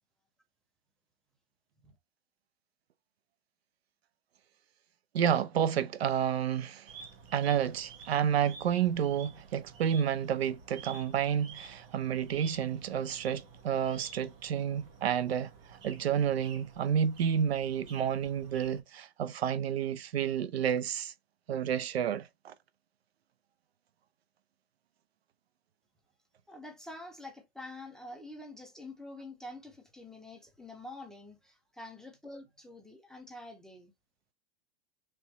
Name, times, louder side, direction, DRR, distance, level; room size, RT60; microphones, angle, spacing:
voice 1, 5.1-6.9 7.3-15.5 15.8-21.1 21.5-22.5, right 8 dB, 85° right, 0.7 m, -30 dB
sound 1, 6.9-18.8, right 5 dB, 65° right, 1.5 m, -51 dB
voice 2, 26.5-33.9, left 2 dB, ahead, 0.5 m, -47 dB
3.4 x 3.0 x 4.0 m
hypercardioid pair, 140°, 30 cm